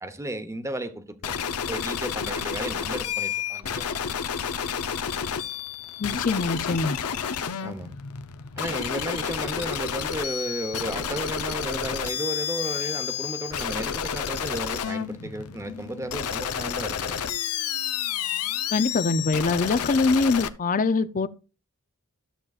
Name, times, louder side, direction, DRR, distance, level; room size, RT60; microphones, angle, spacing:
voice 1, 0.0-3.8 7.6-7.9 8.6-17.2, right 1 dB, 15° right, 0.9 m, -34 dB
sound 1, 1.2-20.5, left 8 dB, 80° left, 0.7 m, -30 dB
voice 2, 6.0-7.0 18.7-21.3, left 3 dB, 35° left, 0.5 m, -23 dB
13.0 x 7.6 x 2.4 m
head